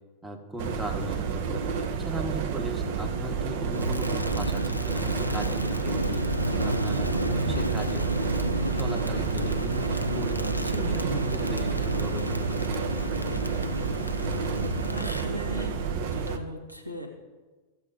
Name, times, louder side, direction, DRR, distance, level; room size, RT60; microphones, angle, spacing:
voice 1, 0.2-6.2 6.6-8.1 8.7-12.6, right 1 dB, 10° right, 3 dB, 1.4 m, -37 dB
sound 1, 0.6-16.4, right 6 dB, 50° right, 0.7 m, -30 dB
Crackle, 3.7-15.3, equal, 90° left, 0.4 m, -31 dB
voice 2, 14.9-17.1, equal, 85° right, 3 dB, 1.2 m, -37 dB
16.5 x 6.8 x 2.7 m, 1.3 s
figure-of-eight pair, 90°, 0 cm